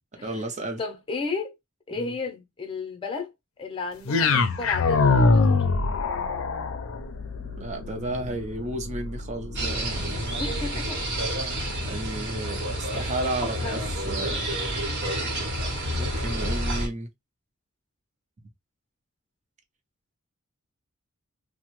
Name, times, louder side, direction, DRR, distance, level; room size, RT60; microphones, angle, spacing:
voice 1, 0.2-0.8 1.9-2.1 7.4-10.2 11.8-14.5 15.9-17.1, right 1 dB, 35° right, 0.6 m, -33 dB
voice 2, 0.8-1.6 1.9-3.3 3.6-5.6 10.4-11.0 13.4-13.8, left 4 dB, 25° left, 0.7 m, -33 dB
sound 1, 4.1-12.3, left 3 dB, 65° left, 0.5 m, -25 dB
sound 2, 9.6-16.9, right 1 dB, 55° right, 1.0 m, -29 dB
2.9 x 2.1 x 3.0 m
head